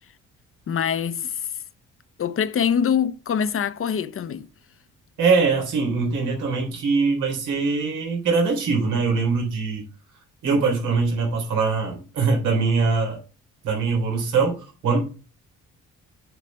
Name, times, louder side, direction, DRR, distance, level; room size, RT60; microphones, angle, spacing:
voice 1, 0.7-1.5 2.2-4.5, left 8 dB, 45° left, 0.8 m, -24 dB
voice 2, 5.2-9.9 10.4-13.2 13.6-15.0, right 4 dB, 90° right, 3.6 m, -22 dB
8.1 x 4.9 x 6.1 m
cardioid pair, 90°, 30 cm